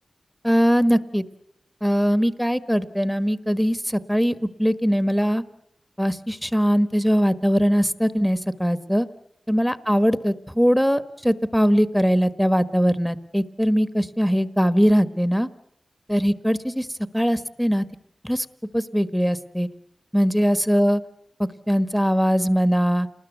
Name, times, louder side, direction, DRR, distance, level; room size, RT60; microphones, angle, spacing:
voice 1, 0.4-1.2 1.8-5.4 6.0-9.1 9.5-15.5 16.1-16.9 17.1-17.8 18.2-18.4 18.7-19.7 20.1-21.0 21.4-23.1, equal, ahead, 13 dB, 1.4 m, -21 dB
28.0 x 20.5 x 8.2 m, 0.73 s
cardioid pair, 45°, 0 cm